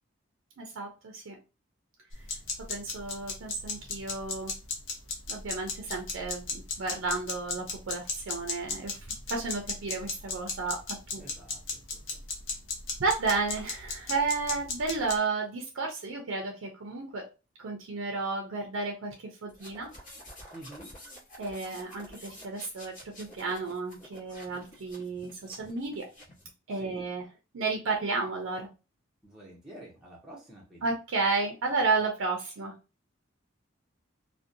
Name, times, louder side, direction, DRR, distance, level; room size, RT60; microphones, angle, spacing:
voice 1, 0.6-1.4 2.7-4.5 5.3-9.0 9.3-11.2 13.0-17.2 17.6-19.1 19.4-19.9 21.4-26.1 26.7-27.2 27.5-28.7 30.8-32.7, right 3 dB, 80° right, 2 dB, 0.5 m, -32 dB
sound 1, 2.1-15.1, left 4 dB, 65° left, 0.8 m, -36 dB
voice 2, 11.1-12.2 20.5-20.9 26.7-27.0 29.2-30.9, right 1 dB, 5° right, -6 dB, 0.6 m, -49 dB
sound 2, 19.5-26.5, equal, 40° left, 1.0 m, -50 dB
2.6 x 2.1 x 2.5 m, 0.31 s
head